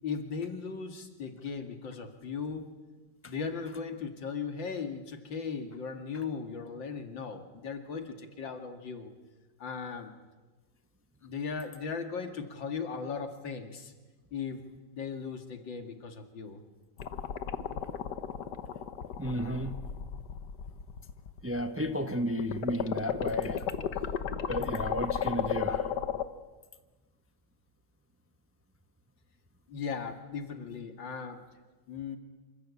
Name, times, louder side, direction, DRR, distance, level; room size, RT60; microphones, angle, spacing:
voice 1, 0.0-2.7 3.2-9.1 9.6-10.1 11.2-13.9 14.3-14.6 14.9-16.6 29.7-31.4 31.9-32.2, left 5 dB, 85° left, 6 dB, 2.9 m, -37 dB
sound 1, 17.0-22.0 22.4-26.2, left 8 dB, 65° left, 1.7 m, -34 dB
voice 2, 19.2-19.8 21.4-23.7 24.5-25.9, equal, 10° right, 8 dB, 0.9 m, -32 dB
27.0 x 25.0 x 8.5 m, 1.3 s
omnidirectional pair, 2.0 m